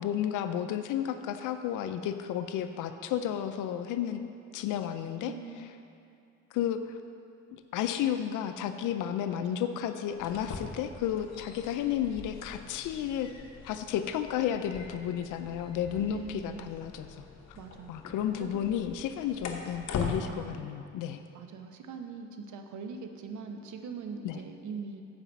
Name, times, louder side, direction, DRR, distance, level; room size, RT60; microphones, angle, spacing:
voice 1, 0.0-5.3 6.5-7.0 7.5-13.3 13.6-17.3 17.9-21.2 24.2-24.4, left 10 dB, 85° left, 9 dB, 0.5 m, -32 dB
voice 2, 5.2-5.7 9.3-9.8 16.0-16.8 17.6-18.7 20.3-20.6 21.3-25.0, right 5 dB, 75° right, 5 dB, 0.9 m, -42 dB
sound 1, 10.1-20.2, left 5 dB, 60° left, 1.0 m, -42 dB
8.8 x 5.0 x 7.2 m, 2.5 s
cardioid pair, 90°, 30 cm